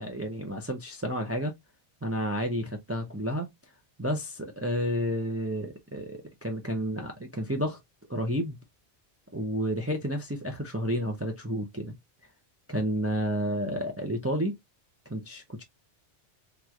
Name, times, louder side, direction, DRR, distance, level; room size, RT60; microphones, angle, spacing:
voice 1, 0.0-1.5 2.0-3.5 4.0-7.8 8.1-8.6 9.3-11.9 12.7-14.6 15.1-15.6, equal, 20° right, 0.4 m, -31 dB
3.6 x 3.0 x 2.3 m
omnidirectional pair, 1.2 m